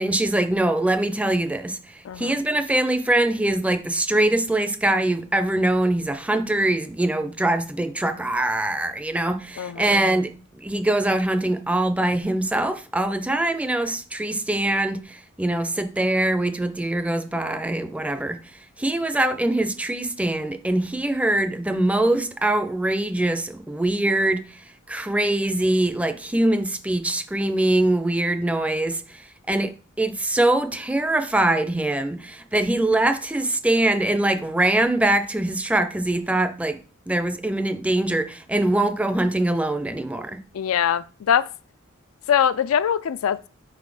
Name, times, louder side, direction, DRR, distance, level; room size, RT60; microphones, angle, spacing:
voice 1, 0.0-1.8 2.2-18.4 18.8-24.4 24.9-29.0 29.5-36.8 37.1-40.4, right 1 dB, 5° right, 0.5 m, -23 dB
voice 2, 2.0-2.3 9.6-9.9 40.5-41.5 42.3-43.5, left 8 dB, 85° left, 0.4 m, -22 dB
5.0 x 4.1 x 4.9 m
head